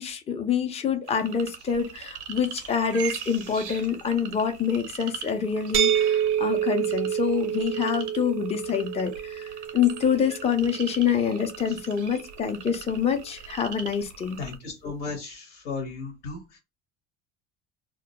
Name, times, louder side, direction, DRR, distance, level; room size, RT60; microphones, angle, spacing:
voice 1, 0.0-14.4, left 7 dB, 20° left, 0.5 m, -26 dB
sound 1, 1.1-14.6, right 7 dB, 90° right, 0.5 m, -41 dB
sound 2, 5.7-11.5, right 10 dB, 40° right, 0.4 m, -28 dB
voice 2, 14.4-16.6, left 4 dB, 85° left, 1.0 m, -35 dB
2.1 x 2.1 x 2.8 m
hypercardioid pair, 70°, 33 cm